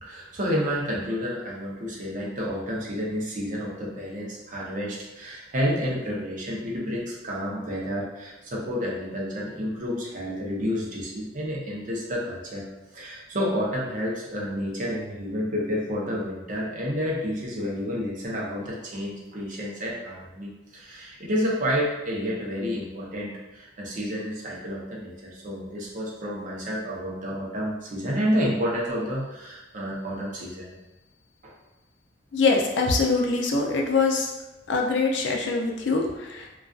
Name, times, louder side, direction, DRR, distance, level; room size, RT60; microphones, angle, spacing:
voice 1, 0.0-12.6 12.9-30.7 31.4-31.5, equal, 45° right, -4 dB, 0.6 m, -30 dB
voice 2, 32.3-34.3 34.7-36.6, left 3 dB, 65° left, 1 dB, 0.4 m, -24 dB
2.4 x 2.3 x 2.3 m, 1.0 s
head